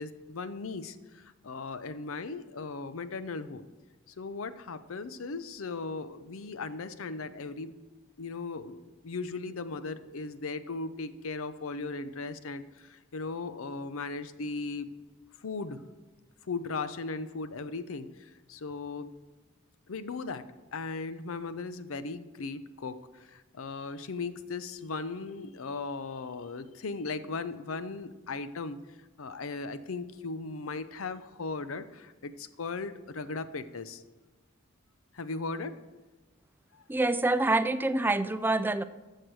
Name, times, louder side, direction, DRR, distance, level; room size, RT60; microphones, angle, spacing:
voice 1, 0.0-3.6 4.1-7.8 8.2-14.9 15.4-15.8 16.5-19.1 19.9-20.5 20.7-28.8 29.2-34.0 35.1-35.8 36.7-36.8, left 3 dB, 80° left, 13 dB, 0.6 m, -37 dB
voice 2, 36.9-38.8, right 2 dB, 10° right, 13 dB, 0.3 m, -26 dB
13.5 x 6.6 x 4.7 m, 1.2 s
head